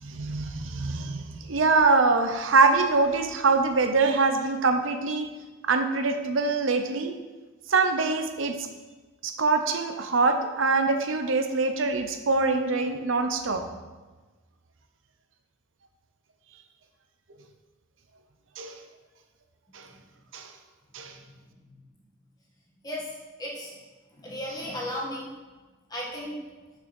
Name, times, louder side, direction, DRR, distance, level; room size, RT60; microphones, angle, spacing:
voice 1, 0.0-5.3 5.6-7.1 7.7-8.7 9.2-13.6 18.6-18.8 19.7-19.9 20.3-20.5 20.9-21.1, right 3 dB, 80° right, 7 dB, 0.8 m, -24 dB
voice 2, 23.4-23.7 24.1-25.3 25.9-26.4, equal, 20° left, -4 dB, 1.7 m, -34 dB
6.3 x 6.2 x 5.4 m, 1.3 s
head